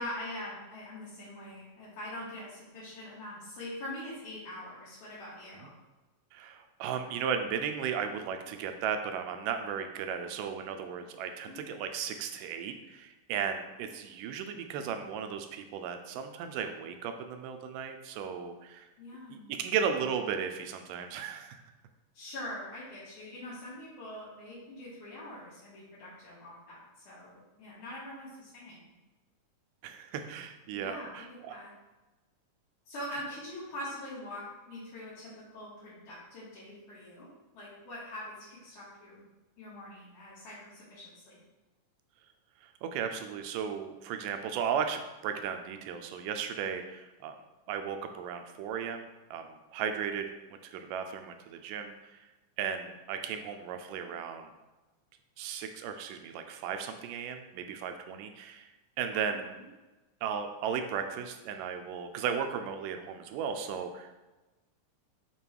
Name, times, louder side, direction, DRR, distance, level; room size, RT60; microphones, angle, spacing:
voice 1, 0.0-5.7 11.5-11.7 13.8-13.9 19.0-19.6 22.1-27.3 27.6-28.8 30.7-31.7 32.9-37.3 37.5-39.2 39.6-41.4 59.1-59.6, left 1 dB, 70° left, -10 dB, 2.9 m, -43 dB
voice 2, 6.3-18.9 19.3-21.6 29.8-31.6 33.1-33.2 42.6-47.4 47.7-52.3 52.6-54.5 55.4-58.7 59.0-59.6 60.2-64.1, right 7 dB, 80° right, 7 dB, 2.1 m, -35 dB
6.9 x 3.0 x 4.6 m, 1.1 s
omnidirectional pair, 3.8 m